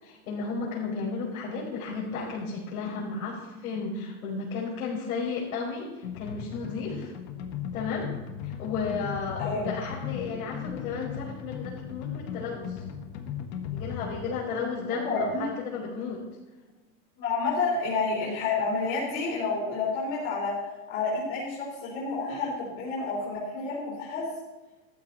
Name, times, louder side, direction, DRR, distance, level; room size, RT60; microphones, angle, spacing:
voice 1, 0.0-7.1 7.7-8.1 8.4-12.8 13.7-16.2, left 4 dB, 70° left, -6 dB, 5.1 m, -33 dB
sound 1, 6.0-14.3, left 8 dB, 45° left, 1.7 m, -37 dB
voice 2, 15.0-15.5 17.2-20.5 20.9-24.3, left 4 dB, 25° left, -6 dB, 4.1 m, -29 dB
14.5 x 14.0 x 4.1 m, 1.1 s
supercardioid pair, 180°, 44 cm